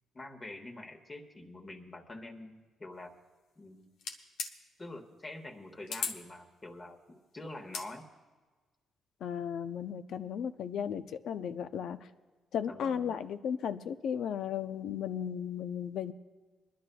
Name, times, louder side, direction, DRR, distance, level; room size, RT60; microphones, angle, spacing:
voice 1, 0.1-3.1 3.6-3.9 4.8-8.0 12.6-13.2, left 2 dB, 30° left, 3 dB, 1.4 m, -46 dB
sound 1, 4.0-4.5 5.9-6.2 7.6-7.9, left 5 dB, 90° left, 1.0 m, -36 dB
voice 2, 9.2-12.0 12.5-16.1, left 8 dB, 70° left, 11 dB, 0.5 m, -35 dB
28.0 x 11.0 x 2.3 m, 1.3 s
cardioid pair, 90°, 0 cm